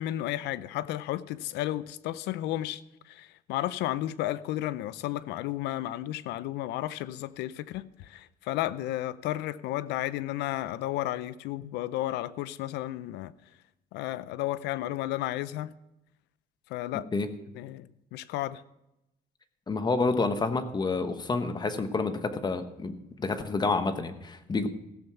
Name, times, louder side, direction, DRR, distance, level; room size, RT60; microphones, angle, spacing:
voice 1, 0.0-13.3 13.9-15.7 16.7-17.1 17.5-17.9 18.1-18.6, left 14 dB, 90° left, 16 dB, 0.6 m, -33 dB
voice 2, 19.7-24.7, left 3 dB, 25° left, 9 dB, 1.2 m, -29 dB
16.0 x 7.0 x 5.9 m, 0.88 s
cardioid pair, 110°, 17 cm